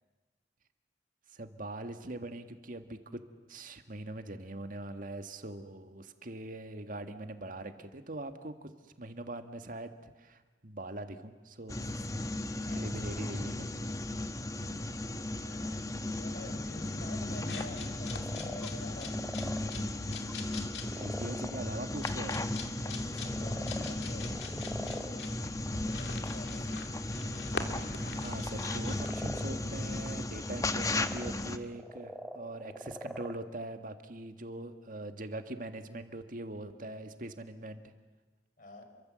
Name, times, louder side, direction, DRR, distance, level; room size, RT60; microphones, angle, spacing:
voice 1, 1.3-3.2 3.5-8.7 9.0-11.8 12.6-13.7 21.0-22.4 28.1-37.9, right 2 dB, 50° right, 8 dB, 1.8 m, -42 dB
sound 1, 11.7-31.6, left 2 dB, 20° left, 1.0 m, -36 dB
voice 2, 12.6-13.0 14.6-19.3 22.8-24.5 24.8-26.8 38.6-38.8, left 1 dB, 50° left, 5 dB, 4.8 m, -49 dB
sound 2, 17.3-29.2, left 4 dB, 75° left, 2.6 m, -44 dB
sound 3, 18.0-19.6 20.3-20.4 20.8-21.6 23.0-25.1 28.8-29.5 30.6-33.4, equal, ahead, 1.8 m, -43 dB
29.0 x 23.5 x 7.7 m, 1.2 s
head